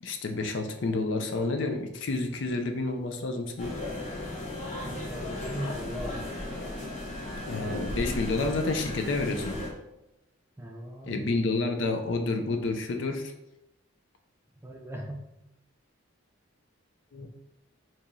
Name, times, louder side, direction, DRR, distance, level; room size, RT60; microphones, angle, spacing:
voice 1, 0.0-3.7 7.5-9.6 11.1-13.3 17.1-17.3, left 3 dB, 60° left, 4 dB, 0.5 m, -29 dB
sound 1, 3.6-9.7, left 1 dB, 35° left, 1.0 m, -36 dB
voice 2, 4.8-6.2 10.6-11.4 14.6-15.2 17.2-17.3, equal, 10° right, 2 dB, 0.3 m, -39 dB
4.6 x 2.9 x 2.6 m, 0.92 s
head